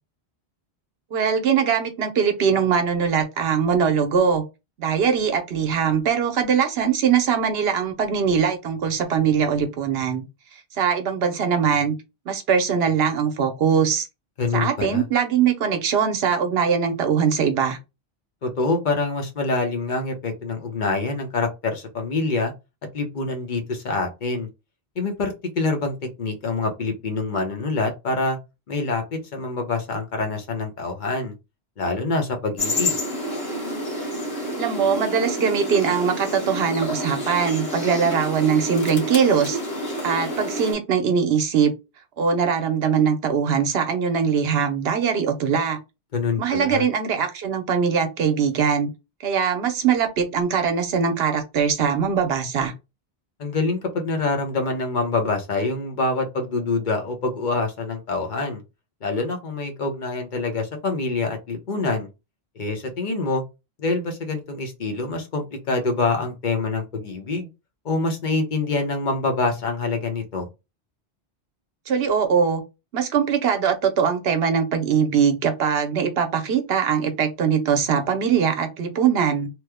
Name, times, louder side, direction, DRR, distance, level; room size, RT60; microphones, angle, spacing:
voice 1, 1.1-4.4 4.8-10.3 10.7-11.9 12.3-14.1 14.5-17.8 34.6-39.6 40.0-41.7 42.2-45.8 46.4-48.9 49.2-52.7 71.9-72.6 72.9-79.5, right 7 dB, 70° right, 0.9 m, -21 dB
voice 2, 14.4-15.0 18.4-22.5 22.9-24.5 25.0-28.4 28.7-31.3 31.8-33.0 46.1-46.9 53.4-58.6 59.0-62.1 62.6-63.4 63.8-67.5 67.8-70.5, left 3 dB, 50° left, 0.9 m, -25 dB
sound 1, 32.6-40.7, equal, 70° left, 1.4 m, -28 dB
3.0 x 2.0 x 3.4 m
omnidirectional pair, 1.1 m